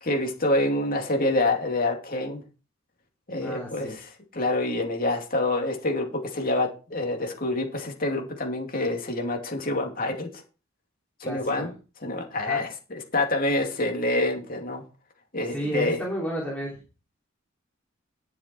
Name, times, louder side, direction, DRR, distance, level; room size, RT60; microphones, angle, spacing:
voice 1, 0.0-2.4 3.3-10.3 11.2-11.7 12.0-14.8 15.3-16.0, left 2 dB, 45° left, 3 dB, 2.6 m, -27 dB
voice 2, 3.4-3.9 11.2-11.7 12.4-12.7 15.5-16.8, equal, 5° left, -4 dB, 3.0 m, -32 dB
11.0 x 7.3 x 4.6 m, 0.33 s
head